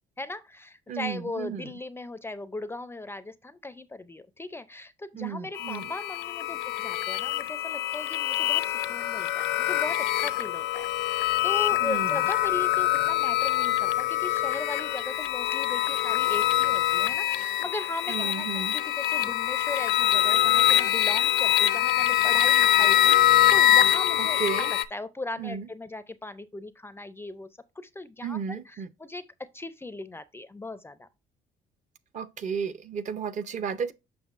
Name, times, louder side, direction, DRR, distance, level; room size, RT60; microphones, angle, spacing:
voice 1, 0.2-27.5 27.8-31.1, left 2 dB, 15° left, 0.4 m, -38 dB
voice 2, 0.9-1.7 5.1-5.9 11.8-12.2 18.1-18.8 24.2-24.7 25.4-25.7 28.2-28.9 32.1-33.9, right 7 dB, 45° right, 0.6 m, -33 dB
sound 1, 5.5-24.8, left 12 dB, 75° left, 0.6 m, -24 dB
7.0 x 5.7 x 2.5 m
cardioid pair, 110°, 17 cm